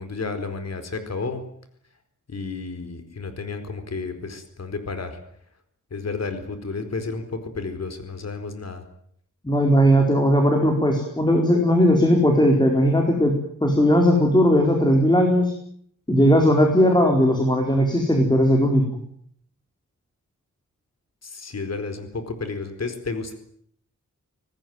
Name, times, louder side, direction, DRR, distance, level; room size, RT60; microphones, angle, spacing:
voice 1, 0.0-1.4 2.3-5.2 5.9-8.8 21.2-23.3, left 4 dB, 55° left, 8 dB, 4.5 m, -31 dB
voice 2, 9.4-13.3 13.6-15.5 16.1-18.8, equal, 15° left, 2 dB, 4.4 m, -18 dB
25.5 x 19.5 x 9.5 m, 0.68 s
wide cardioid pair, 155°, 31 cm